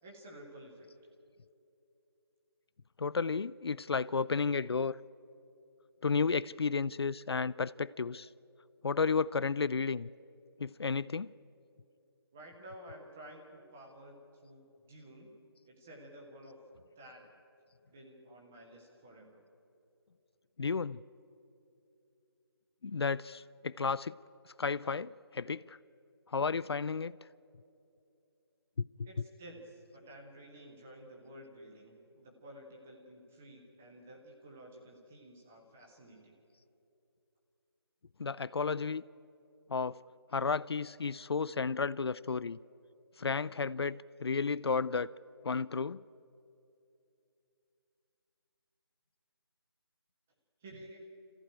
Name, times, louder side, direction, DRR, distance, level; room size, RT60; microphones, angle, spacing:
voice 1, 0.0-0.9 12.3-15.3 15.7-16.6 17.0-17.2 17.9-19.4 29.0-36.3 50.6-51.1, right 1 dB, 5° right, 1 dB, 0.5 m, -52 dB
voice 2, 3.0-5.0 6.0-8.3 8.8-10.1 10.6-11.3 20.6-21.0 22.8-24.1 24.6-25.8 26.3-27.2 28.8-28.9 38.2-39.0 39.7-40.0 40.3-42.6 43.2-45.1 45.4-46.0, left 5 dB, 75° left, 19 dB, 0.5 m, -32 dB
27.5 x 14.5 x 8.9 m, 2.8 s
figure-of-eight pair, 175°, 13 cm